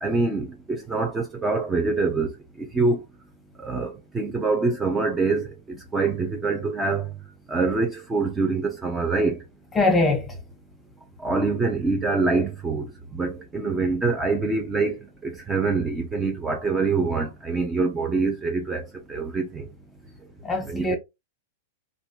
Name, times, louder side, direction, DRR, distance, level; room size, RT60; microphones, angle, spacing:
voice 1, 0.0-2.3 2.6-3.0 3.6-7.1 7.5-9.4 11.2-15.0 15.2-18.8 19.1-19.6 20.7-21.0, right 3 dB, 15° right, 0.7 m, -25 dB
voice 2, 9.7-10.4 20.4-21.0, left 2 dB, 15° left, 1.0 m, -22 dB
2.5 x 2.4 x 2.2 m
figure-of-eight pair, 100°, 0 cm